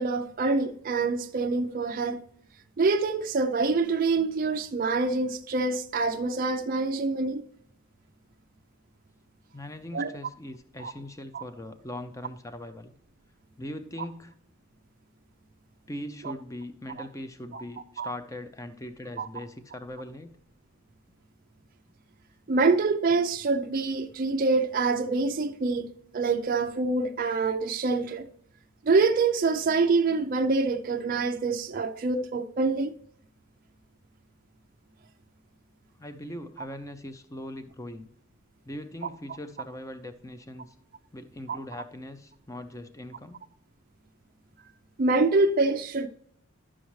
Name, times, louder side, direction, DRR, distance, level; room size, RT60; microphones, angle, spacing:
voice 1, 0.0-2.2 2.8-7.4 9.9-10.1 10.8-10.9 11.3-11.4 16.2-16.3 17.5-17.6 18.0-18.1 19.2-19.3 22.5-28.3 28.9-32.9 41.5-41.6 45.0-46.1, right 3 dB, 40° right, 0.4 m, -26 dB
voice 2, 9.5-12.9 13.6-14.3 15.9-20.4 36.0-38.1 38.7-40.7 41.1-43.4, left 1 dB, 15° left, 0.5 m, -40 dB
11.5 x 6.2 x 3.1 m
head